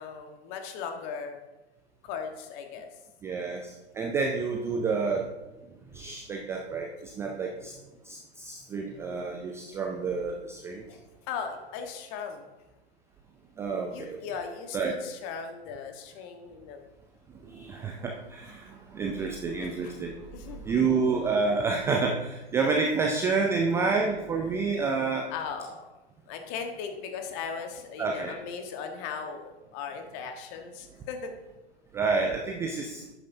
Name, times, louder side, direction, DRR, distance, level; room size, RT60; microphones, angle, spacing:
voice 1, 0.0-1.4 2.0-2.9 3.5-3.6 10.9-11.0 11.3-12.5 13.9-16.8 19.6-20.0 20.3-20.7 25.3-25.9 26.3-31.3, left 6 dB, 35° left, 5 dB, 1.3 m, -38 dB
voice 2, 3.2-5.3 5.9-7.7 8.0-10.9 13.6-14.2 14.7-14.9 17.4-20.3 20.6-25.3 28.0-28.3 31.9-33.0, right 4 dB, 10° right, 2 dB, 0.3 m, -29 dB
11.5 x 9.0 x 2.7 m, 1.1 s
figure-of-eight pair, 110°, 32 cm